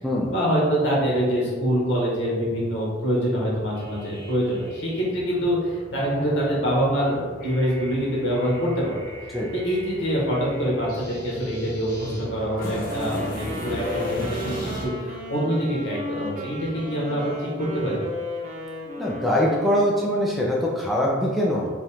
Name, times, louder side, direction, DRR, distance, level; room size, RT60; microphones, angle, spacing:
voice 1, 0.2-9.0 9.5-18.0, equal, 65° left, -5 dB, 1.5 m, -25 dB
sound 1, 3.7-14.8, equal, 50° left, 1.0 m, -37 dB
Wind instrument woodwind instrument, 12.9-20.1, left 1 dB, 40° right, 0.7 m, -34 dB
voice 2, 19.0-21.7, equal, ahead, -3 dB, 0.4 m, -23 dB
5.2 x 2.5 x 3.5 m, 1.4 s
head